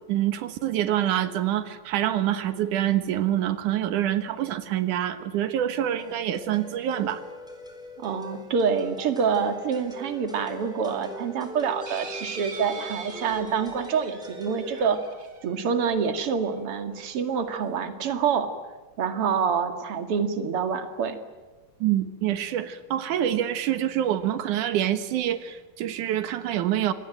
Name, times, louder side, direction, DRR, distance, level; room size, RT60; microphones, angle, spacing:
voice 1, 0.1-7.2 21.8-26.9, right 11 dB, 85° right, 10 dB, 2.8 m, -26 dB
sound 1, 6.0-14.8, equal, ahead, 4.6 m, -42 dB
voice 2, 8.0-15.0 15.4-18.5 19.0-21.2, right 6 dB, 50° right, 8 dB, 3.0 m, -26 dB
sound 2, 11.8-16.4 17.1-17.2 17.4-17.5, right 4 dB, 30° right, 2.1 m, -42 dB
27.5 x 23.5 x 9.2 m, 1.3 s
omnidirectional pair, 3.5 m